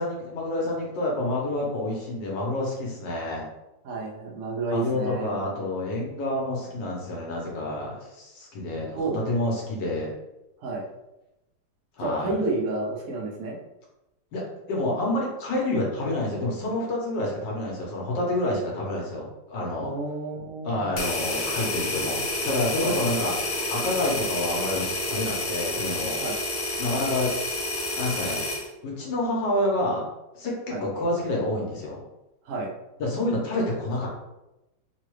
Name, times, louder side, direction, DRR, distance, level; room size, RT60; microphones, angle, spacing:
voice 1, 0.0-3.5 4.7-10.1 12.0-12.4 14.3-19.9 20.6-23.3 23.7-26.2 26.8-27.3 28.0-28.4 28.8-30.0 30.4-32.0 33.0-34.1, left 1 dB, 85° left, -3 dB, 1.7 m, -28 dB
voice 2, 3.8-5.4 8.9-9.2 10.6-10.9 12.0-13.6 19.8-20.9 22.8-23.0 26.2-26.4 30.7-30.8 32.4-32.7, right 3 dB, 55° right, -1 dB, 0.9 m, -30 dB
sound 1, 21.0-28.7, left 2 dB, 60° left, 0.7 m, -29 dB
3.9 x 2.3 x 3.1 m, 0.93 s
omnidirectional pair, 1.9 m